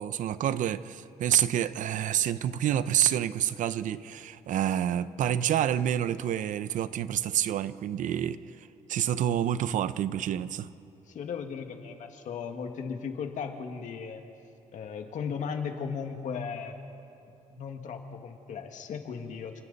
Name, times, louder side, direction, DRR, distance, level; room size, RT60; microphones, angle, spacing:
voice 1, 0.0-10.7, right 10 dB, 85° right, 14 dB, 0.7 m, -28 dB
voice 2, 11.1-14.2 14.7-16.8 17.5-19.6, left 6 dB, 75° left, 4 dB, 1.9 m, -36 dB
29.0 x 26.5 x 4.1 m, 2.7 s
cardioid pair, 145°, 13 cm